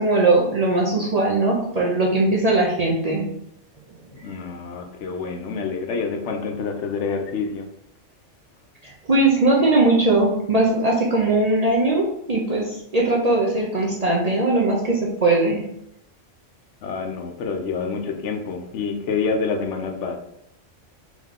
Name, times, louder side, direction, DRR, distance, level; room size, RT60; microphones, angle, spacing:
voice 1, 0.0-3.3 8.8-15.6, right 2 dB, 45° right, -2 dB, 0.6 m, -20 dB
voice 2, 4.2-7.7 16.8-20.2, left 5 dB, 75° left, 4 dB, 0.9 m, -27 dB
3.7 x 3.1 x 3.6 m, 0.76 s
omnidirectional pair, 1.2 m